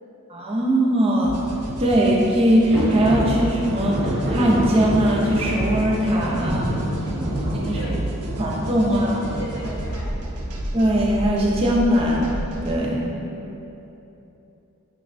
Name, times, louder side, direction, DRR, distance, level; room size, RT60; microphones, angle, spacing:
voice 1, 0.3-1.4 1.8-6.7 7.5-7.8 8.4-9.2 10.7-12.3 12.6-13.1, equal, 25° right, -4 dB, 0.4 m, -20 dB
sound 1, 1.2-12.8, right 1 dB, 90° right, 0.4 m, -32 dB
sound 2, 2.7-11.3, equal, 45° right, 0.8 m, -28 dB
voice 2, 6.3-6.7 7.1-7.3 7.6-8.1 8.9-10.2 13.2-13.6, right 1 dB, 75° left, -4 dB, 0.7 m, -37 dB
5.9 x 2.0 x 2.5 m, 3.0 s
head